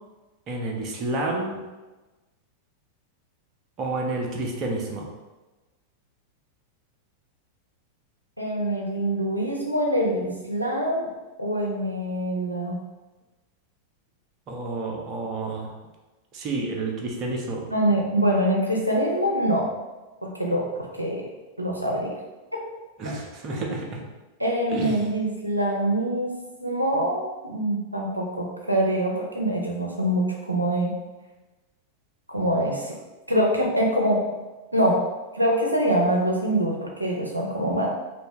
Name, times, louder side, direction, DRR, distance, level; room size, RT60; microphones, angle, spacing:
voice 1, 0.5-1.6 3.8-5.1 14.5-15.7 16.3-17.7 23.0-24.1 24.7-25.1, right 2 dB, 35° right, 0 dB, 0.6 m, -30 dB
voice 2, 8.4-11.1 11.4-12.8 17.7-19.7 20.2-21.2 21.6-22.2 24.4-26.3 26.6-30.9 32.3-33.0 33.3-34.2 34.7-35.0 35.3-37.9, right 1 dB, 85° right, -1 dB, 0.5 m, -24 dB
3.0 x 2.6 x 3.5 m, 1.2 s
figure-of-eight pair, 90°, 0 cm